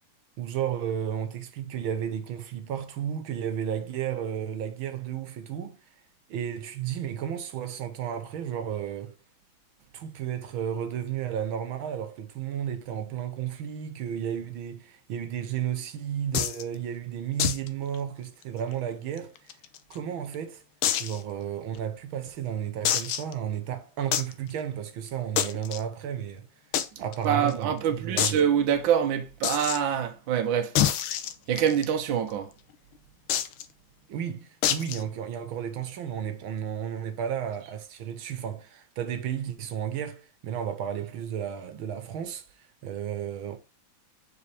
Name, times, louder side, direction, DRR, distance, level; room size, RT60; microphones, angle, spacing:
voice 1, 0.4-5.8 6.3-9.2 9.9-19.5 19.9-20.6 21.0-26.5 27.0-28.4 34.1-43.6, right 9 dB, 90° right, 1.9 m, -33 dB
sound 1, 16.3-16.6 17.4-17.7 17.9-18.0 18.4-18.5 19.2-20.0 20.8-21.2 21.7-21.8 22.8-23.3 24.1-24.3 25.4-25.8 26.7-26.9 27.1-27.2 27.5-27.6 28.2-28.4 29.4-29.8 30.7-31.8 33.3-33.6 34.6-35.0, left 10 dB, 90° left, 1.6 m, -26 dB
voice 2, 27.2-30.8 31.5-32.5, right 8 dB, 75° right, 1.5 m, -25 dB
7.1 x 4.8 x 3.4 m
omnidirectional pair, 2.2 m